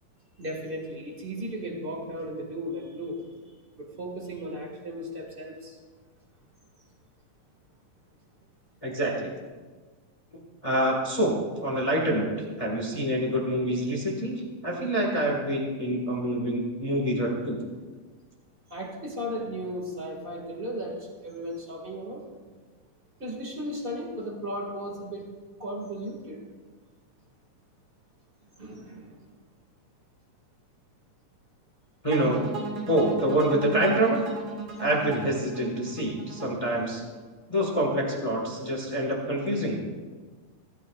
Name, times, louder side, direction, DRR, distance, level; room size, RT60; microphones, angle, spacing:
voice 1, 0.4-3.2 3.8-5.8 18.7-22.3 23.2-25.3 25.6-26.4 28.6-29.1, equal, 25° right, 0 dB, 1.3 m, -35 dB
voice 2, 8.8-9.3 10.3-11.4 11.6-12.3 12.6-17.6 32.0-32.4 32.9-34.2 34.8-37.0 37.5-39.9, right 1 dB, 40° left, -2 dB, 0.4 m, -26 dB
sound 1, 32.1-37.2, right 4 dB, 55° right, 1.1 m, -36 dB
26.0 x 9.4 x 2.4 m, 1.4 s
omnidirectional pair, 3.7 m